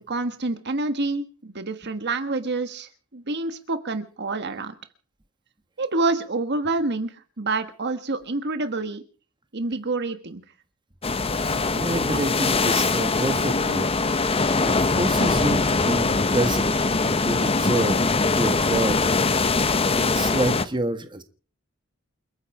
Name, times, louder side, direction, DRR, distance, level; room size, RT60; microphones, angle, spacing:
voice 1, 0.1-4.7 5.8-9.0 9.5-10.4, right 3 dB, 55° right, 9 dB, 1.5 m, -27 dB
sound 1, 11.0-20.7, left 3 dB, 30° left, 0.9 m, -22 dB
voice 2, 11.2-13.9 14.3-18.0 18.3-19.0 19.3-19.5 19.9-21.2, right 1 dB, 20° right, 8 dB, 1.6 m, -28 dB
29.0 x 9.8 x 4.9 m, 0.40 s
head